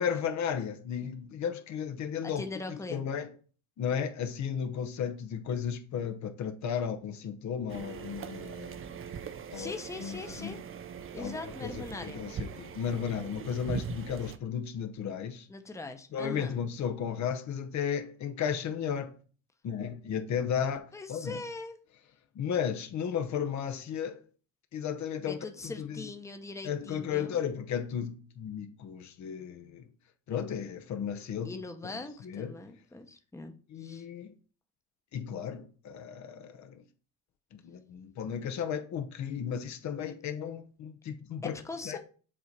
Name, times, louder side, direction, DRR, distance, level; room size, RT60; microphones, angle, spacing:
voice 1, 0.0-2.4 2.7-3.3 3.8-8.8 9.5-9.7 10.0-10.5 11.2-15.5 16.1-19.1 19.6-21.4 22.3-24.2 24.7-25.4 25.6-26.0 26.6-29.9 30.3-31.6 32.2-32.5 33.7-34.3 35.1-36.8 37.5-41.6 41.8-42.0, left 8 dB, 65° left, 0.8 m, -34 dB
voice 2, 2.2-3.0 9.5-10.6 11.1-12.3 15.5-16.6 20.9-21.8 25.2-27.4 31.4-33.5 33.8-34.1 41.4-42.0, left 3 dB, 10° left, 0.7 m, -41 dB
sound 1, 7.7-14.4, right 7 dB, 45° right, 0.6 m, -41 dB
7.5 x 2.7 x 4.6 m
cardioid pair, 90°, 30 cm